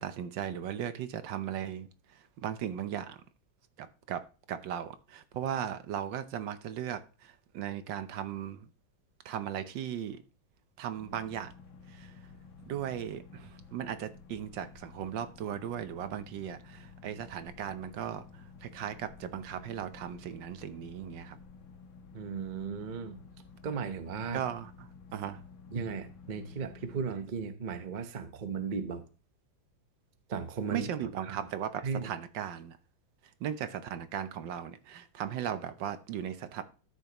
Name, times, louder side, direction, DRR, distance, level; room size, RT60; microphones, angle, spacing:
voice 1, 0.0-3.2 3.8-8.7 9.2-10.2 10.8-11.5 11.9-12.2 12.7-21.4 24.3-24.7 25.1-25.4 30.7-32.8 33.4-36.6, right 9 dB, 70° right, 1.4 m, -37 dB
sound 1, 11.0-27.1, left 5 dB, 85° left, 1.8 m, -52 dB
voice 2, 22.1-23.2 23.6-24.4 25.7-29.0 30.3-30.9 31.2-31.4 31.8-32.1, right 5 dB, 40° right, 0.6 m, -36 dB
13.0 x 6.8 x 2.9 m
omnidirectional pair, 2.1 m